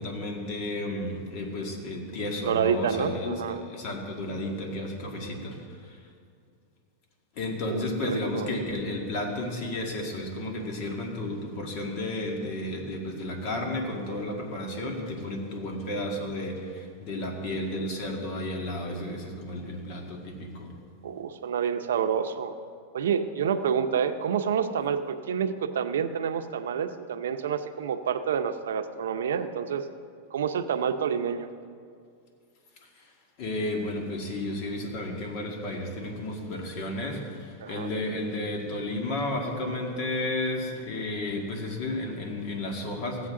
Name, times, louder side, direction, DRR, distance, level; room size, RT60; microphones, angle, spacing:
voice 1, 0.0-6.0 7.4-20.7 33.0-33.1 33.4-43.3, left 1 dB, 50° left, 1 dB, 2.0 m, -32 dB
voice 2, 2.4-3.6 7.7-8.5 21.0-22.5 22.9-29.9 30.3-31.5 37.6-37.9, right 7 dB, 85° right, 9 dB, 0.6 m, -28 dB
15.5 x 7.9 x 3.7 m, 2.2 s
hypercardioid pair, 120°, 0 cm